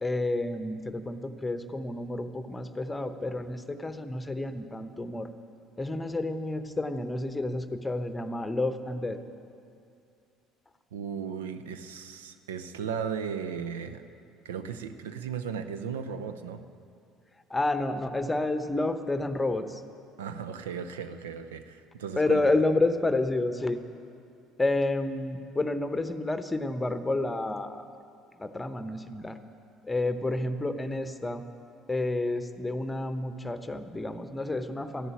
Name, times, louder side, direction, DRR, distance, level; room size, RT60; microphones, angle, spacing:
voice 1, 0.0-5.3 5.8-9.2 17.5-19.8 22.2-23.8 24.6-27.8 28.4-29.4 29.9-31.4 31.9-35.1, left 2 dB, 15° left, 10 dB, 1.0 m, -30 dB
voice 2, 10.9-14.0 14.4-16.6 20.2-22.4, right 7 dB, 70° right, 10 dB, 0.7 m, -36 dB
15.0 x 11.0 x 9.0 m, 2.5 s
figure-of-eight pair, 55°, 0 cm